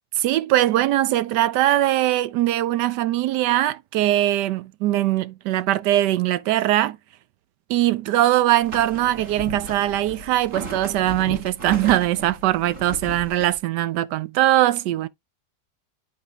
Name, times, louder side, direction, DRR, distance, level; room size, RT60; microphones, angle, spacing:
voice 1, 0.2-7.0 7.7-15.1, right 14 dB, 80° right, 1.2 m, -21 dB
sound 1, 8.6-13.6, right 1 dB, 50° right, 2.1 m, -36 dB
11.0 x 4.4 x 2.3 m
omnidirectional pair, 1.8 m